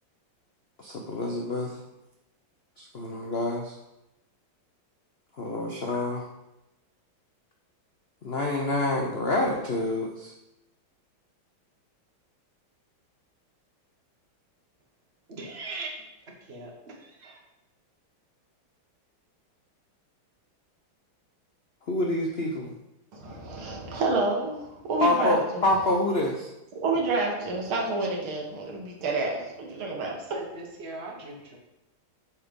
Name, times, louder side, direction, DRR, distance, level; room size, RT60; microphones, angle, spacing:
voice 1, 0.8-1.7 2.8-3.7 5.4-6.2 8.2-10.3 21.9-22.7 25.0-26.5, left 1 dB, 65° left, 0 dB, 0.6 m, -27 dB
voice 2, 15.3-16.0 16.4-17.4 29.7-31.6, right 2 dB, 35° right, 0 dB, 1.4 m, -40 dB
voice 3, 23.1-25.6 26.8-30.1, right 2 dB, 85° right, -1 dB, 2.3 m, -28 dB
8.5 x 4.2 x 5.2 m, 0.92 s
omnidirectional pair, 2.2 m